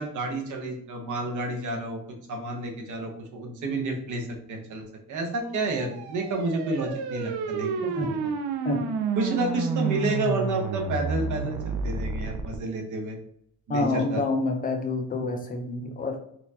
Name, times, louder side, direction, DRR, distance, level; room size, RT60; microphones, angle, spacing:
voice 1, 0.0-2.0 2.3-7.7 8.1-8.3 9.2-13.2 13.7-14.2, right 2 dB, 50° right, 2 dB, 0.8 m, -30 dB
sound 1, 5.6-12.6, right 5 dB, 85° right, 0.6 m, -30 dB
voice 2, 13.7-16.2, left 3 dB, 25° left, 4 dB, 0.5 m, -28 dB
4.2 x 2.5 x 2.7 m, 0.68 s
cardioid pair, 165°, 37 cm